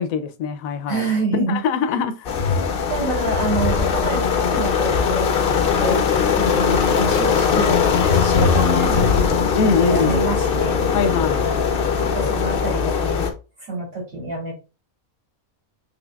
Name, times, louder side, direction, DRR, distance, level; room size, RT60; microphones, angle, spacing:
voice 1, 0.0-1.0 1.5-2.4 9.5-10.2 10.9-11.5, left 5 dB, 80° left, 1.0 m, -23 dB
voice 2, 0.9-1.6 2.9-6.0 6.3-7.7 8.2-9.5 9.8-10.8 12.0-13.3 13.7-14.5, right 2 dB, 75° right, 3.0 m, -27 dB
sound 1, 2.2-13.3, left 6 dB, 55° left, 0.7 m, -20 dB
6.0 x 3.3 x 2.3 m
omnidirectional pair, 1.5 m